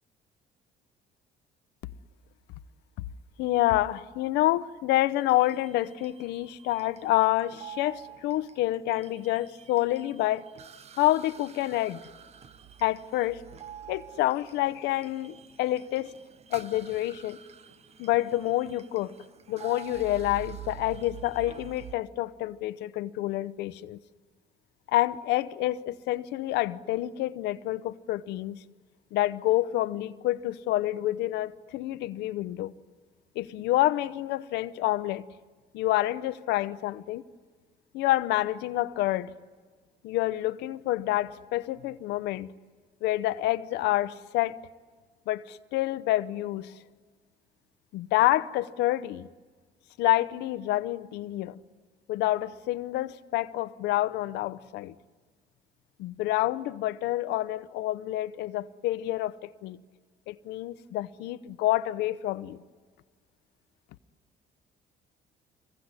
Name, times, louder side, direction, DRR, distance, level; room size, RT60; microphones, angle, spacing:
voice 1, 3.4-10.5 11.0-12.0 12.8-13.4 13.9-16.1 16.5-17.4 18.0-19.1 19.5-24.0 24.9-28.6 29.1-32.7 33.3-35.3 35.7-37.2 37.9-39.3 40.0-42.5 43.0-44.7 45.3-46.7 47.9-49.3 50.0-51.6 52.1-54.9 56.0-59.8 60.3-62.6, left 15 dB, 85° left, 0.8 m, -28 dB
sound 1, 5.2-21.9, right 10 dB, 40° right, 0.9 m, -47 dB
26.5 x 22.0 x 9.7 m
cardioid pair, 110°, 17 cm